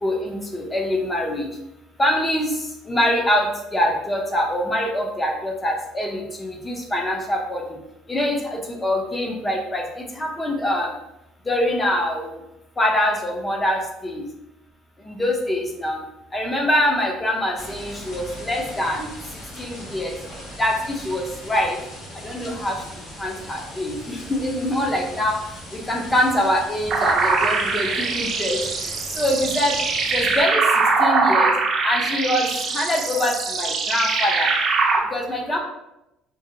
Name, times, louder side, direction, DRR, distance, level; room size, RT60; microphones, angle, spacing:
voice 1, 0.0-1.5 2.0-7.8 8.1-10.9 11.4-12.3 12.8-14.2 15.0-16.0 16.3-19.1 19.6-20.2 20.6-21.8 22.1-22.8 23.2-25.4 25.7-29.8 30.1-30.6 31.0-31.5 31.8-34.5 34.9-35.6, left 1 dB, 15° left, 1 dB, 0.5 m, -24 dB
sound 1, 17.5-30.4, equal, 65° left, 1.3 m, -39 dB
sound 2, 26.9-35.0, right 4 dB, 40° right, 0.4 m, -22 dB
2.8 x 2.6 x 2.6 m, 0.90 s
cardioid pair, 140°, 0 cm